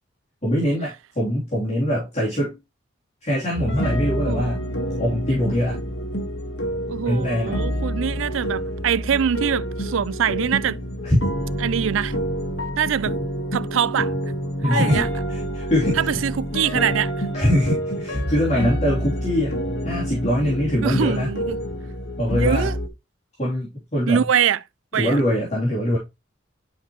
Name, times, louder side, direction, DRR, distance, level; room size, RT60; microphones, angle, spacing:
voice 1, 0.4-2.6 3.2-4.6 5.0-5.8 7.1-7.6 11.0-11.2 14.6-16.2 17.3-19.6 19.8-21.3 22.2-22.7 23.4-24.2 25.0-26.0, equal, 35° left, 3.0 m, -23 dB
sound 1, 3.5-22.9, equal, 65° left, 1.5 m, -28 dB
voice 2, 4.3-4.6 6.9-10.8 11.6-12.2 12.8-13.2 13.5-14.1 14.7-15.1 16.0-17.3 20.8-21.6 22.3-22.8 24.1-24.6 24.9-25.2, right 8 dB, 85° right, 0.4 m, -23 dB
sound 2, 7.5-9.8, right 1 dB, 50° right, 1.8 m, -41 dB
11.0 x 4.8 x 3.0 m
head